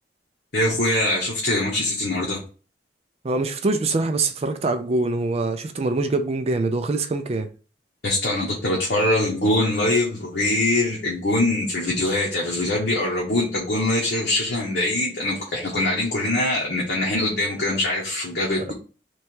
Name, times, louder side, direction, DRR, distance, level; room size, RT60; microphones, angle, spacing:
voice 1, 0.5-2.4 8.0-18.7, left 1 dB, 60° left, 1.1 m, -23 dB
voice 2, 3.2-7.5 18.6-18.7, right 3 dB, 35° right, 0.4 m, -24 dB
3.3 x 3.0 x 4.4 m
head